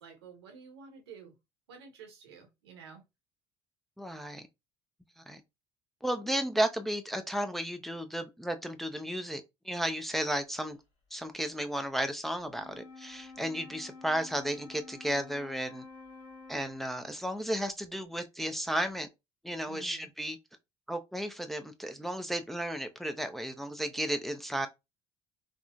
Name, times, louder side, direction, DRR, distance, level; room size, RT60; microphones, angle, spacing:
voice 1, 0.0-1.3 1.7-3.0 19.7-20.1, right 6 dB, 85° right, 0.9 m, -51 dB
voice 2, 4.0-4.5 5.2-5.4 6.0-10.8 11.1-15.8 16.5-19.1 19.4-20.4 20.9-24.7, right 1 dB, ahead, 0.5 m, -33 dB
Wind instrument woodwind instrument, 12.4-17.2, left 3 dB, 60° left, 1.2 m, -50 dB
3.6 x 2.1 x 2.3 m
hypercardioid pair, 65°, 13 cm